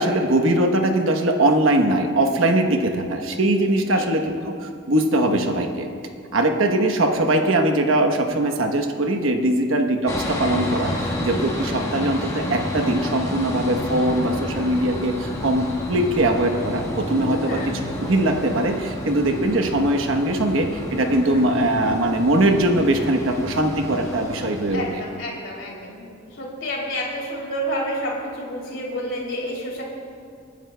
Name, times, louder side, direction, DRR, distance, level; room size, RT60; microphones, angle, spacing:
voice 1, 0.0-5.9 6.3-24.9, right 1 dB, 80° right, 4 dB, 1.0 m, -21 dB
sound 1, 10.1-25.2, left 1 dB, 15° left, 1.4 m, -30 dB
voice 2, 17.4-17.7 21.2-21.5 24.7-29.8, equal, 65° left, -3 dB, 3.0 m, -30 dB
27.5 x 10.5 x 2.3 m, 2.4 s
head